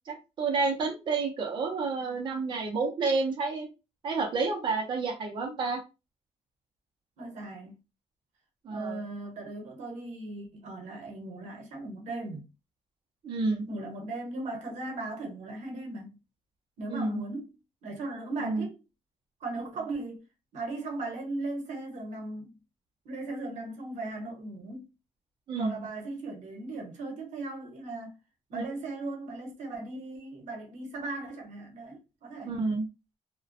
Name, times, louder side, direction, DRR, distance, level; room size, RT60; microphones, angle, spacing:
voice 1, 0.1-3.7 4.0-5.8 8.6-9.0 13.2-13.6 16.9-17.2 18.4-18.7 25.5-25.8 28.5-28.6 32.5-32.9, right 4 dB, 40° right, 0.6 m, -30 dB
voice 2, 7.2-7.8 8.7-12.5 13.7-16.2 16.8-17.5 17.8-18.7 19.4-20.2 20.5-22.6 23.0-24.9 25.6-28.2 28.5-32.7, right 2 dB, 80° right, 0.8 m, -38 dB
2.4 x 2.2 x 2.5 m
cardioid pair, 170°, 12 cm